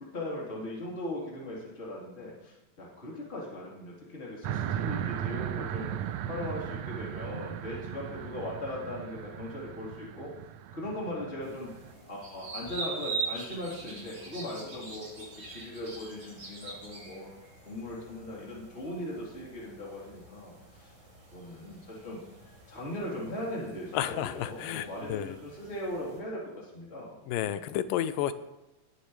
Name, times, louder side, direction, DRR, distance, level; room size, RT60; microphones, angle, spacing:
voice 1, 0.1-5.9 6.3-10.3 10.7-11.7 12.1-17.3 17.6-20.9 21.3-22.2 22.7-27.6, left 1 dB, 20° left, -5 dB, 3.6 m, -39 dB
sound 1, 4.4-11.9, right 10 dB, 90° right, 1.5 m, -37 dB
sound 2, 11.4-26.2, right 4 dB, 35° right, 6.5 m, -43 dB
voice 2, 23.9-25.4 27.3-28.3, left 11 dB, 80° left, 12 dB, 2.3 m, -31 dB
20.0 x 10.5 x 3.3 m, 1.0 s
omnidirectional pair, 3.9 m